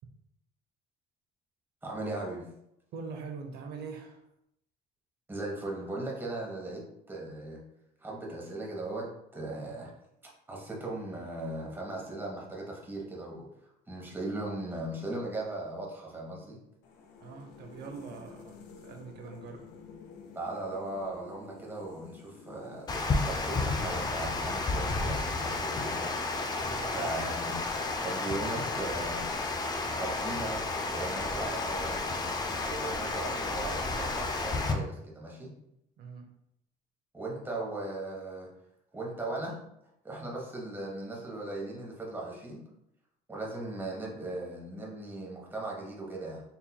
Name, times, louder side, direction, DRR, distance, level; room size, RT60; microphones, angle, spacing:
voice 1, 1.8-2.4 5.3-7.6 8.0-9.9 10.5-13.5 13.9-16.6 20.3-22.9 23.3-26.2 26.5-27.6 28.0-29.4 29.9-35.5 37.1-38.5 38.9-39.6 40.0-42.6 43.3-46.4, right 2 dB, 10° right, -3 dB, 1.0 m, -38 dB
voice 2, 2.9-4.2 17.2-18.6 18.8-19.6 26.6-27.1 36.0-36.3, right 5 dB, 70° right, 4 dB, 0.7 m, -43 dB
sound 1, 16.8-26.2, left 5 dB, 85° left, 0.6 m, -52 dB
Water, 22.9-34.7, left 3 dB, 25° left, 0.4 m, -32 dB
4.1 x 2.7 x 2.2 m, 0.79 s
cardioid pair, 110°, 17 cm